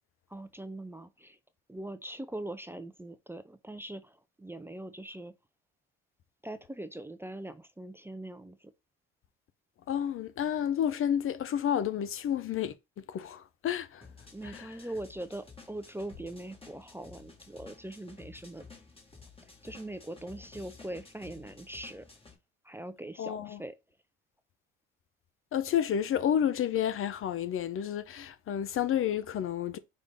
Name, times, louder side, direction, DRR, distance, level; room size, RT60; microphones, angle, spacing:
voice 1, 0.3-1.4 1.7-5.3 6.4-8.7 14.3-18.6 19.4-22.1 22.6-23.8, right 1 dB, 10° right, 0.5 m, -42 dB
voice 2, 9.9-14.1 14.4-14.7 23.2-23.6 25.5-29.8, left 9 dB, 45° left, 0.5 m, -30 dB
sound 1, 14.0-22.4, left 4 dB, 20° left, 1.6 m, -53 dB
5.2 x 2.5 x 3.5 m
supercardioid pair, 70°, 30 cm